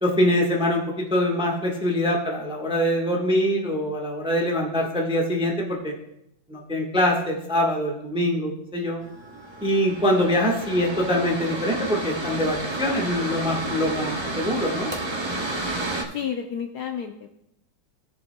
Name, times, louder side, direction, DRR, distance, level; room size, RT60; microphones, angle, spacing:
voice 1, 0.0-5.9 6.5-9.0 9.6-14.9, equal, 5° right, 0 dB, 0.9 m, -24 dB
Mechanical fan, 9.0-16.0, right 2 dB, 35° right, 0.4 m, -31 dB
voice 2, 16.1-17.3, left 8 dB, 70° left, 4 dB, 1.0 m, -31 dB
18.5 x 7.1 x 2.2 m, 0.81 s
omnidirectional pair, 2.2 m